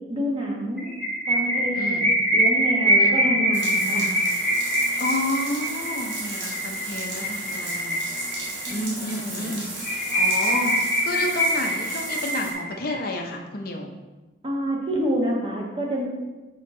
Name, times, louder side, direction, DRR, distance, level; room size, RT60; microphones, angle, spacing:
voice 1, 0.1-0.9 1.3-4.1 8.7-9.6 14.4-16.0, equal, 25° right, -3 dB, 1.3 m, -28 dB
sound 1, 0.8-8.7 9.1-9.2 9.5-9.6 9.8-12.9, right 1 dB, 5° left, 1.6 m, -23 dB
voice 2, 1.8-2.1 3.0-3.4 5.0-8.0 8.7-9.7 10.1-10.8 11.0-13.9, left 2 dB, 45° left, 2 dB, 0.8 m, -30 dB
sound 2, 3.5-12.5, right 2 dB, 65° right, 1.5 m, -35 dB
5.6 x 5.5 x 3.9 m, 1.2 s
head